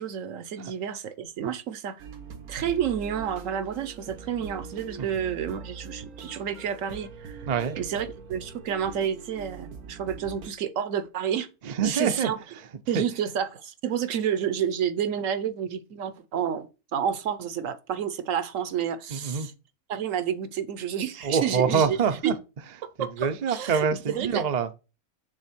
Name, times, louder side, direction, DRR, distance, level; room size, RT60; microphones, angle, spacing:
voice 1, 0.0-2.0 2.5-7.5 7.8-11.5 11.8-12.4 12.9-19.5 19.9-22.0 22.2-22.3 23.0-24.4, right 8 dB, 65° right, 1.0 m, -30 dB
sound 1, 2.0-10.5, right 5 dB, 90° right, 1.6 m, -42 dB
voice 2, 7.5-7.8 11.6-13.0 19.1-19.5 21.2-22.3 23.0-24.7, right 6 dB, 45° right, 0.6 m, -26 dB
6.3 x 3.6 x 6.0 m
omnidirectional pair, 1.5 m